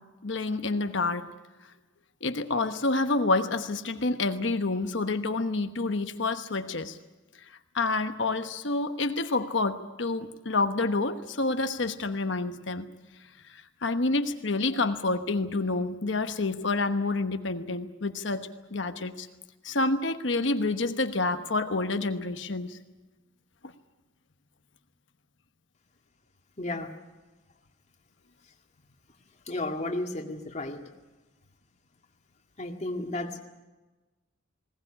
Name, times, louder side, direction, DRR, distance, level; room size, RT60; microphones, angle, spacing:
voice 1, 0.2-1.3 2.2-7.0 7.4-7.5 7.7-12.9 13.5-19.3 19.6-22.8, left 3 dB, 60° left, 8 dB, 1.1 m, -28 dB
voice 2, 26.6-26.9 29.5-30.8 32.6-33.4, left 2 dB, 35° left, 3 dB, 2.1 m, -33 dB
20.5 x 18.0 x 10.0 m, 1.2 s
head